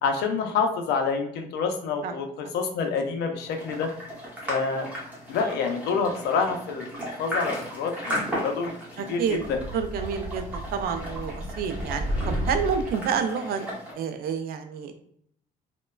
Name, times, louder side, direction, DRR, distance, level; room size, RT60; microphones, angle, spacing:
voice 1, 0.0-3.9 4.5-4.9 5.3-6.9 7.2-9.6, left 5 dB, 80° left, 5 dB, 0.5 m, -27 dB
sound 1, 3.5-13.9, equal, 10° right, 1.0 m, -36 dB
voice 2, 9.0-9.4 9.7-13.7 14.0-14.9, right 6 dB, 60° right, 8 dB, 0.4 m, -29 dB
sound 2, 9.3-13.0, equal, 40° right, 0.9 m, -32 dB
2.9 x 2.1 x 2.2 m, 0.67 s
cardioid pair, 110°, 17 cm